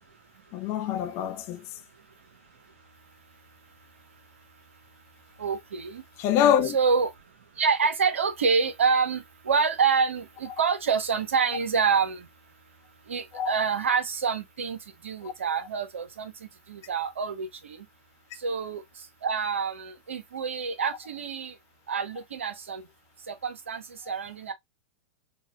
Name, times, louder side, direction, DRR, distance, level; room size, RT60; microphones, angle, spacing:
voice 1, 0.5-1.7 6.2-6.8 13.3-13.6 24.1-24.2, left 9 dB, 40° left, 0.6 m, -25 dB
voice 2, 5.4-6.0 6.7-7.1 7.6-12.2 13.1-14.8 15.0-16.3 16.7-17.8 18.4-18.8 19.2-21.5 21.9-22.8 23.3-24.5, right 5 dB, 75° right, 0.6 m, -27 dB
3.9 x 2.2 x 2.3 m
figure-of-eight pair, 95°, 7 cm